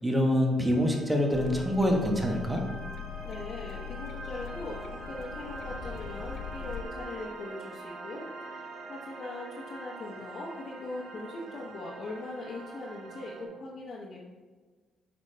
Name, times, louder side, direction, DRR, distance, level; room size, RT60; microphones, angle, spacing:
voice 1, 0.0-2.6, equal, 10° right, 1 dB, 1.3 m, -25 dB
sound 1, 0.6-13.5, right 3 dB, 80° right, 1.2 m, -44 dB
sound 2, 1.3-6.8, left 9 dB, 70° left, 0.4 m, -41 dB
voice 2, 3.2-14.3, left 2 dB, 55° left, -5 dB, 1.1 m, -41 dB
8.4 x 5.0 x 3.4 m, 1.4 s
cardioid pair, 90°, 0 cm